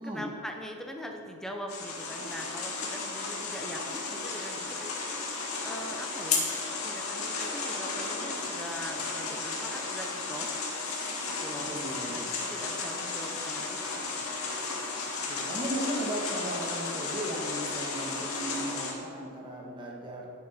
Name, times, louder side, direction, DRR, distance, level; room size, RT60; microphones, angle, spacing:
voice 1, 0.0-4.9 5.6-6.5 6.8-10.5 11.4-11.8 12.4-14.6, equal, ahead, 2 dB, 1.1 m, -42 dB
sound 1, 1.7-18.9, left 4 dB, 75° left, 2.1 m, -34 dB
voice 2, 11.5-12.3 15.3-20.3, right 1 dB, 20° right, -3 dB, 1.7 m, -36 dB
16.0 x 8.1 x 4.6 m, 2.5 s
head